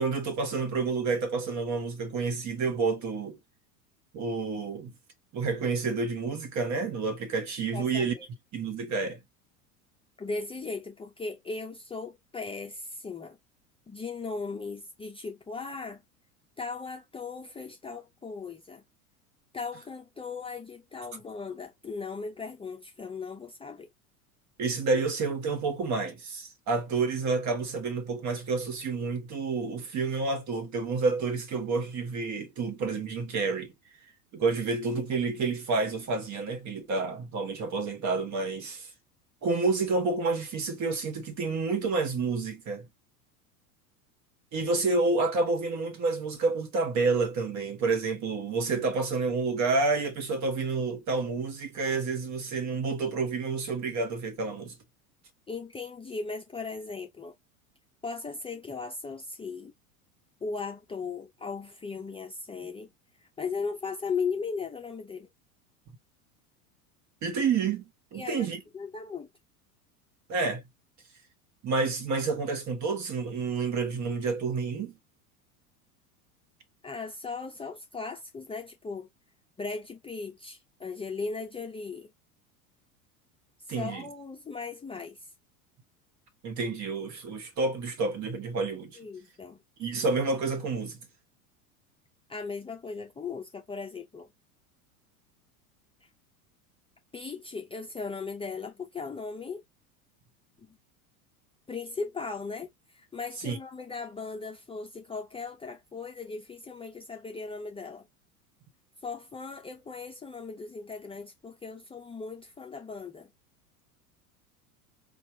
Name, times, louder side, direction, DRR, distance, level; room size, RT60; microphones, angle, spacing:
voice 1, 0.0-3.4 4.1-4.9 5.3-8.1 8.5-9.2 24.6-33.7 34.3-38.9 39.4-42.9 44.5-54.7 67.2-68.6 70.3-70.6 71.6-75.0 83.7-84.0 86.4-88.9 89.8-91.0 103.4-103.6, right 4 dB, 40° right, 1.5 m, -29 dB
voice 2, 7.7-8.3 10.2-13.4 13.9-16.0 16.6-18.8 19.5-23.9 55.5-57.3 58.0-59.7 60.4-62.9 63.2-65.3 68.1-69.3 76.8-79.1 79.6-82.1 83.7-85.3 88.9-89.6 92.3-94.3 96.0-96.1 97.1-99.6 100.6-100.8 101.7-108.1 109.0-113.3, left 4 dB, 10° left, 0.7 m, -37 dB
4.5 x 2.5 x 2.8 m
hypercardioid pair, 90°, 45 cm